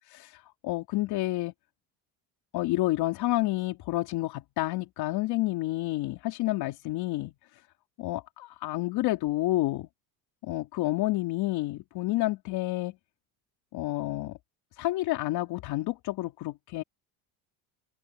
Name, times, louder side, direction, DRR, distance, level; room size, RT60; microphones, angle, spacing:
voice 1, 0.0-1.5 2.5-7.6 8.0-9.9 10.4-12.9 13.7-14.4 14.8-16.8, left 17 dB, 70° left, 3.7 m, -29 dB
cardioid pair, 120°, 40 cm